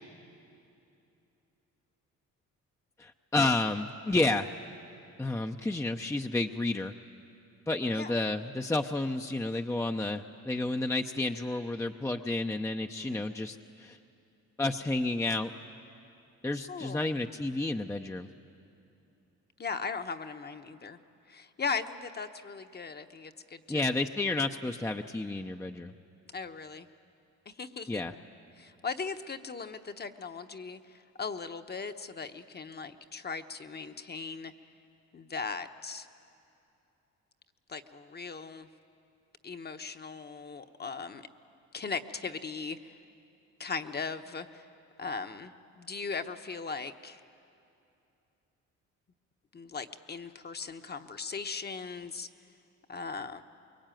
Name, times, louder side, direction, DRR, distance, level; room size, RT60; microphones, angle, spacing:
voice 1, 3.0-4.5 5.2-6.9 7.7-14.0 14.6-15.5 16.4-18.3 23.7-25.9 27.9-28.1, left 2 dB, 10° left, 5 dB, 0.7 m, -31 dB
voice 2, 16.7-17.1 19.6-21.0 21.3-24.0 26.3-26.9 27.5-28.0 28.6-34.5 35.1-36.1 37.7-38.7 39.4-41.2 41.7-43.0 43.6-44.7 45.0-47.2 49.5-52.3 52.9-53.4, left 5 dB, 35° left, 7 dB, 1.1 m, -38 dB
24.5 x 22.5 x 9.1 m, 2.7 s
cardioid pair, 90°, 30 cm